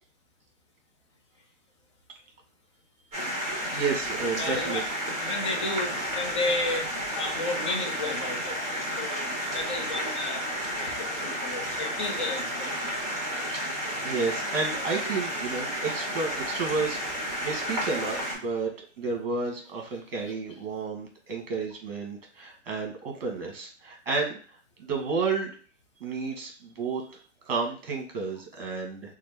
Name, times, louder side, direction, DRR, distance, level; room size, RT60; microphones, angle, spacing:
sound 1, 3.1-18.4, equal, 15° right, 1.4 m, -32 dB
voice 1, 3.7-4.8 14.0-17.2 17.4-18.7 19.0-24.4 24.8-25.5 26.0-29.1, right 4 dB, 45° right, 2 dB, 1.4 m, -31 dB
voice 2, 4.4-4.8 5.2-6.9 7.2-8.6 9.0-10.4 10.8-12.8, left 2 dB, 25° left, 2 dB, 0.4 m, -32 dB
4.0 x 2.0 x 3.4 m, 0.39 s
hypercardioid pair, 150°, 39 cm